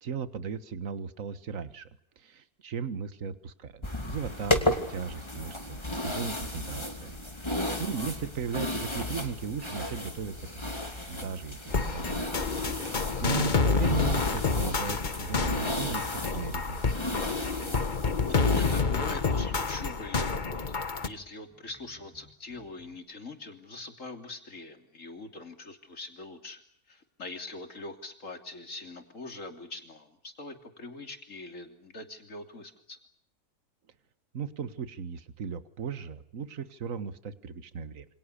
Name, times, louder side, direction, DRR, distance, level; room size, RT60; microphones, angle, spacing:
voice 1, 0.0-1.9 2.2-7.1 7.4-10.8 11.1-12.5 12.9-17.3 34.3-38.1, right 6 dB, 60° right, 13 dB, 1.8 m, -37 dB
sound 1, 3.8-18.8, left 1 dB, 20° left, 2.7 m, -34 dB
voice 2, 7.6-8.1 13.3-13.9 18.2-26.6 26.9-33.0, left 2 dB, 55° left, 6 dB, 3.4 m, -43 dB
sound 2, 11.7-21.1, left 4 dB, 35° left, 1.3 m, -28 dB
sound 3, 12.7-13.0 13.4-15.6 15.9-18.1 18.5-20.7 21.0-22.9, left 2 dB, 10° right, 4.2 m, -56 dB
28.0 x 26.5 x 6.8 m, 0.65 s
omnidirectional pair, 1.6 m